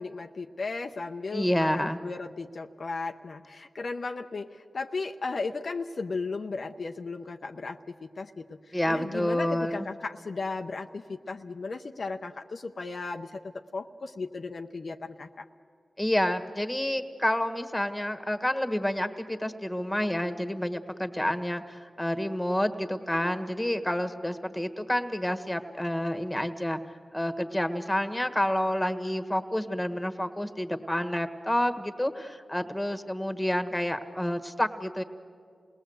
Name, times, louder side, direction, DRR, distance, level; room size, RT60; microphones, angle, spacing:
voice 1, 0.0-15.4, left 3 dB, 65° left, 5 dB, 0.6 m, -36 dB
voice 2, 1.3-2.0 8.7-9.9 16.0-26.8 27.1-35.0, left 1 dB, 10° left, 9 dB, 1.5 m, -29 dB
28.0 x 18.5 x 7.9 m, 2.2 s
cardioid pair, 45°, 0 cm